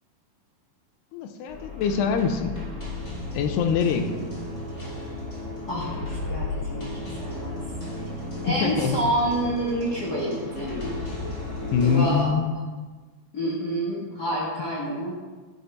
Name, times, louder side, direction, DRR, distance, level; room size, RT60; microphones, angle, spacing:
voice 1, 1.1-2.5 3.3-4.3 8.5-9.1 9.6-9.8 11.7-12.5, left 6 dB, 85° left, 7 dB, 2.8 m, -24 dB
sound 1, 1.5-12.2, left 2 dB, 20° left, 3.2 m, -34 dB
voice 2, 5.7-7.6 8.4-10.9 11.8-12.3 13.3-15.1, right 1 dB, 70° left, -5 dB, 0.9 m, -28 dB
11.5 x 6.7 x 5.5 m, 1.4 s
omnidirectional pair, 4.7 m